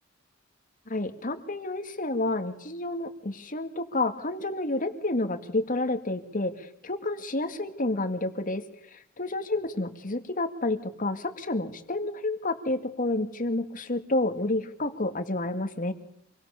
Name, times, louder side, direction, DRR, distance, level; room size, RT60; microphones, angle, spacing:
voice 1, 0.9-15.9, left 2 dB, 45° left, 8 dB, 2.1 m, -30 dB
27.5 x 23.0 x 7.0 m, 0.77 s
head